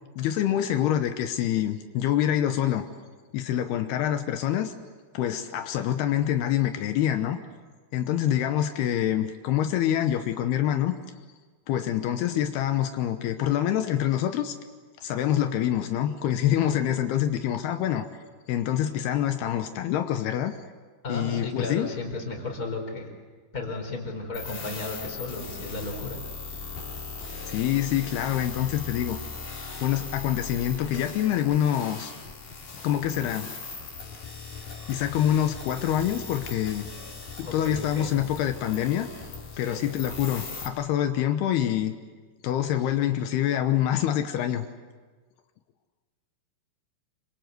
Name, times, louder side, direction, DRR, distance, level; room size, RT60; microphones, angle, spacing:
voice 1, 0.2-2.9 3.3-4.7 5.1-7.4 7.9-10.9 11.7-14.6 15.0-18.1 18.5-20.5 21.1-21.9 27.4-29.2 29.7-32.2 32.7-33.5 34.9-36.9 37.4-39.1 39.6-41.9 42.4-44.7, left 11 dB, 80° left, 7 dB, 3.0 m, -26 dB
voice 2, 21.0-23.1 23.5-26.2 37.4-38.1 39.5-39.8, left 3 dB, 20° left, 3 dB, 4.3 m, -34 dB
sound 1, 24.3-40.7, left 4 dB, 55° left, 5.8 m, -39 dB
26.5 x 25.5 x 7.9 m, 1.4 s
omnidirectional pair, 4.6 m